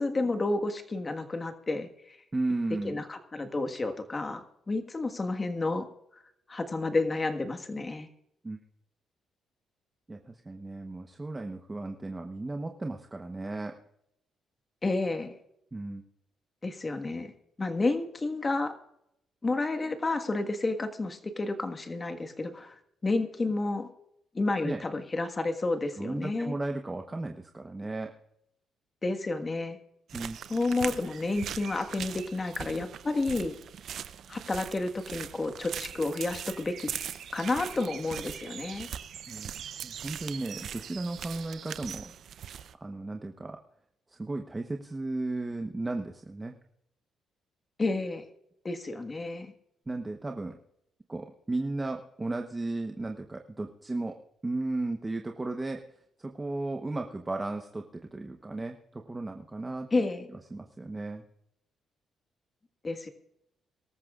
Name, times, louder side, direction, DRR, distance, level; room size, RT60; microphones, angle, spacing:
voice 1, 0.0-2.2 2.8-5.9 6.5-8.1 14.8-15.3 16.6-17.3 17.6-18.7 19.4-22.7 23.0-23.9 24.3-26.5 29.0-29.8 30.5-33.6 34.3-36.9 37.3-38.9 47.8-48.2 48.6-49.5 59.9-60.3 62.8-63.1, left 2 dB, 25° left, 6 dB, 1.6 m, -30 dB
voice 2, 2.3-3.0 8.4-8.6 10.1-13.8 15.7-16.0 24.6-24.8 26.0-28.1 30.1-30.4 39.3-39.5 39.8-42.1 42.8-43.6 44.1-46.5 49.9-50.6 51.1-55.8 56.2-59.9 60.5-61.2, right 2 dB, 20° right, 4 dB, 1.0 m, -35 dB
sound 1, 30.1-42.7, right 9 dB, 65° right, 0.6 m, -41 dB
23.5 x 13.5 x 2.5 m, 0.79 s
cardioid pair, 90°, 0 cm